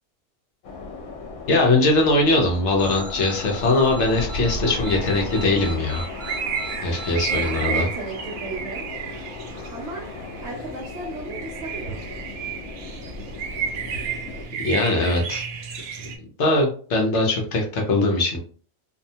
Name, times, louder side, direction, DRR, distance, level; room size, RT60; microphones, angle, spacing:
sound 1, 0.6-14.5, left 2 dB, 80° left, 1.1 m, -36 dB
voice 1, 1.5-6.0 6.8-7.9 14.6-15.4 16.4-18.4, left 2 dB, 60° left, 0 dB, 1.0 m, -21 dB
sound 2, 2.8-7.6, right 1 dB, 30° left, 0.3 m, -39 dB
sound 3, 4.6-16.2, right 7 dB, 85° right, 1.0 m, -33 dB
voice 2, 7.3-8.9 9.7-12.0, right 2 dB, 60° right, -2 dB, 0.8 m, -35 dB
2.8 x 2.2 x 2.7 m, 0.43 s
omnidirectional pair, 1.5 m